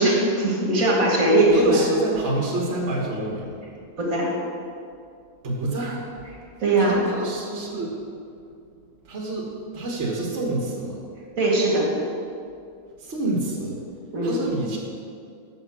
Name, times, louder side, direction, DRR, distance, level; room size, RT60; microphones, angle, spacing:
voice 1, 0.0-1.9 4.0-4.3 6.6-7.0 11.4-11.9 14.1-14.4, right 1 dB, 70° right, -3 dB, 2.0 m, -20 dB
voice 2, 1.5-3.6 5.4-6.0 6.7-8.0 9.0-11.0 13.0-13.8 14.2-14.8, right 2 dB, 55° right, -3 dB, 1.7 m, -28 dB
8.0 x 6.5 x 6.0 m, 2.4 s
omnidirectional pair, 1.5 m